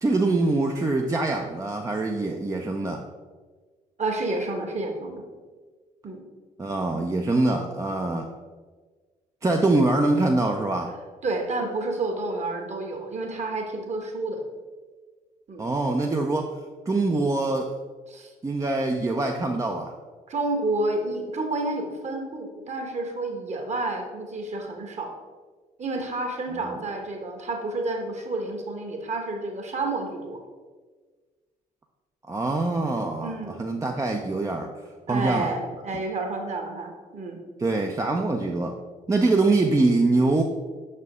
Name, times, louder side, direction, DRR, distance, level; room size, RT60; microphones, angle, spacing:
voice 1, 0.0-3.0 6.6-8.3 9.4-10.9 15.6-16.5 16.9-17.7 18.4-19.9 26.7-26.8 32.3-34.7 35.1-35.5 37.6-38.7 39.1-40.4, right 2 dB, 15° right, 2 dB, 0.5 m, -24 dB
voice 2, 4.0-5.2 6.0-6.2 11.2-14.4 15.5-15.7 18.1-18.3 20.3-25.1 25.8-30.4 33.2-33.6 35.1-37.4, right 2 dB, 40° right, 3 dB, 1.2 m, -30 dB
6.2 x 4.3 x 3.5 m, 1.4 s
figure-of-eight pair, 45°, 19 cm